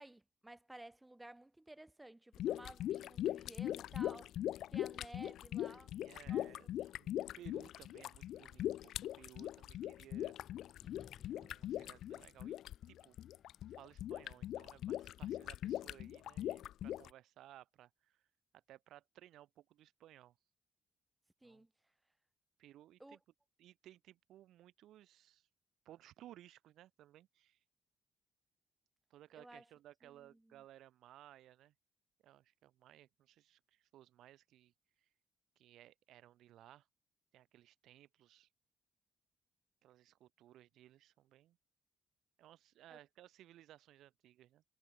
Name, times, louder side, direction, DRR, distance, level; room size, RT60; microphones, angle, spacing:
voice 1, 0.0-4.3 4.7-5.9 6.2-6.7 21.4-21.7 23.0-23.2 29.3-29.7 30.0-30.6 42.9-43.0, right 1 dB, 10° right, 2.0 m, -55 dB
sound 1, 2.3-17.1, left 12 dB, 80° left, 0.4 m, -41 dB
voice 2, 5.9-10.4 11.3-13.2 13.7-18.2 18.5-20.4 21.4-21.7 22.6-23.2 23.6-25.5 25.9-27.6 29.1-31.7 32.2-34.7 35.0-35.1 35.6-36.9 37.3-38.5 39.8-41.6 42.4-44.6, right 13 dB, 80° right, 2.0 m, -60 dB
Wind, 6.7-16.7, left 7 dB, 50° left, 1.5 m, -67 dB
cardioid pair, 90°, 0 cm